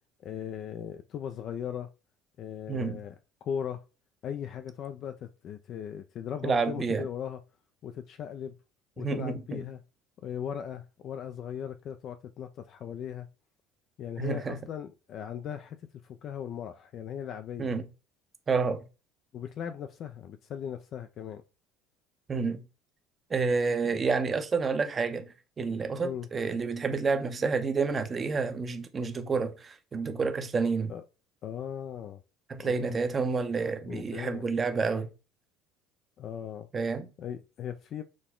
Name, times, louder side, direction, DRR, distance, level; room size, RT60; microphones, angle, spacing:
voice 1, 0.2-1.9 2.4-3.1 3.4-3.8 4.2-7.4 7.8-8.6 9.0-9.8 10.2-13.3 14.0-15.8 16.0-17.7 19.3-21.4 23.8-24.0 25.6-25.7 26.0-26.3 30.9-31.0 31.4-32.2 32.6-33.0 33.9-34.5 36.2-36.7 37.2-38.0, left 8 dB, 50° left, 0.4 m, -38 dB
voice 2, 2.7-3.0 6.4-7.1 9.0-9.6 14.2-14.6 17.6-17.9 18.5-18.8 22.3-22.6 23.3-30.9 32.5-35.1 36.7-37.1, right 4 dB, 30° right, 0.7 m, -29 dB
6.2 x 2.2 x 3.7 m
supercardioid pair, 100°, 0 cm